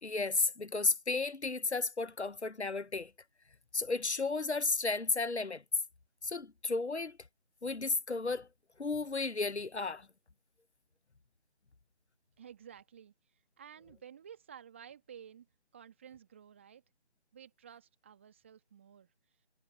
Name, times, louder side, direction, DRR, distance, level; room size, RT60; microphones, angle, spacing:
voice 1, 0.0-3.1 3.7-5.6 6.2-7.2 7.6-8.5 8.8-10.1, left 3 dB, 80° left, 1.1 m, -33 dB
voice 2, 12.4-13.1 13.6-15.5 15.7-16.8 17.3-19.1, right 8 dB, 10° right, 1.8 m, -53 dB
figure-of-eight pair, 165°, 33 cm